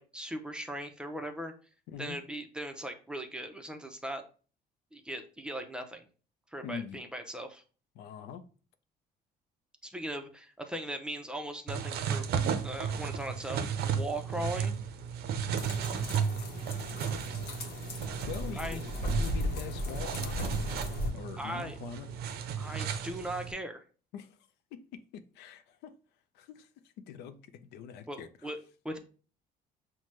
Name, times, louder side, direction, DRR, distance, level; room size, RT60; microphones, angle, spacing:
voice 1, 0.0-1.5 2.0-4.2 4.9-6.1 6.5-7.6 9.8-12.3 12.6-14.8 18.5-18.8 21.4-21.7 22.6-23.8 28.1-29.0, right 1 dB, 5° right, 0.5 m, -39 dB
voice 2, 6.6-7.0 8.0-8.4 18.3-20.5 21.1-22.1 24.1-24.4 24.7-26.0 26.3-26.7 27.1-28.5, left 8 dB, 85° left, 0.5 m, -43 dB
sound 1, 11.7-23.5, right 7 dB, 70° right, 0.5 m, -34 dB
sound 2, 15.6-21.1, left 1 dB, 65° left, 0.9 m, -36 dB
5.8 x 2.1 x 3.1 m
cardioid pair, 110°, 17 cm